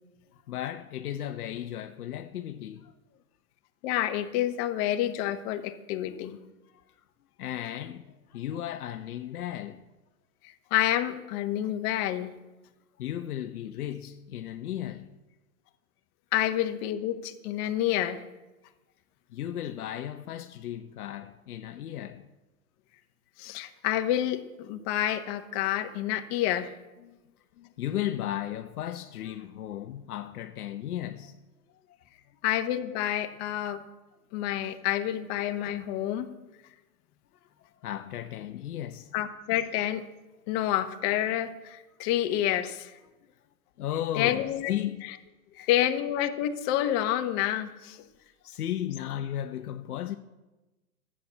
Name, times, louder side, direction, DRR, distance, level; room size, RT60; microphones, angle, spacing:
voice 1, 0.3-2.9 6.9-7.0 7.4-9.8 13.0-15.2 19.3-22.3 27.0-27.2 27.6-31.4 31.9-32.0 32.3-32.4 37.4-39.1 43.8-45.7 48.2-50.2, left 11 dB, 75° left, 0.9 m, -35 dB
voice 2, 3.8-6.4 10.4-12.3 16.3-18.2 23.4-26.7 32.4-33.8 34.3-36.3 39.1-40.0 40.5-42.9 44.2-44.7 45.7-48.0, left 12 dB, 45° left, 1.3 m, -28 dB
13.0 x 8.7 x 8.3 m
hypercardioid pair, 120°, 46 cm